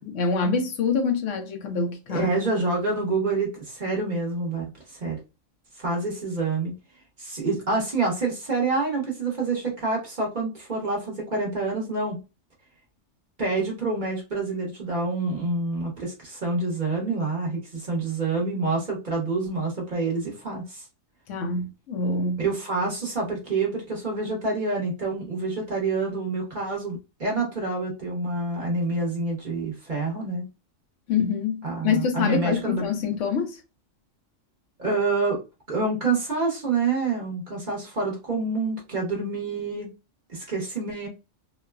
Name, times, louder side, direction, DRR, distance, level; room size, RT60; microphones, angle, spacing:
voice 1, 0.0-2.3 21.3-22.4 31.1-33.6, left 5 dB, 75° left, 0.9 m, -25 dB
voice 2, 2.1-4.6 4.9-5.2 5.8-6.7 7.2-12.2 13.4-20.8 22.4-30.4 31.6-32.9 34.8-35.4 35.7-39.9 40.3-41.1, right 3 dB, 40° right, 0.9 m, -27 dB
3.0 x 2.1 x 2.2 m
omnidirectional pair, 1.4 m